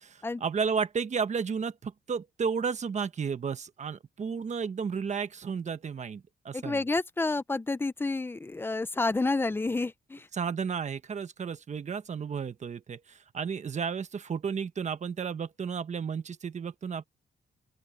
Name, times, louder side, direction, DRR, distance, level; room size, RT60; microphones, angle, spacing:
voice 1, 0.0-6.8 10.3-17.0, right 6 dB, 35° right, 1.1 m, -33 dB
voice 2, 6.5-10.3, left 3 dB, 10° left, 0.5 m, -29 dB
open air
cardioid pair, 140°, 19 cm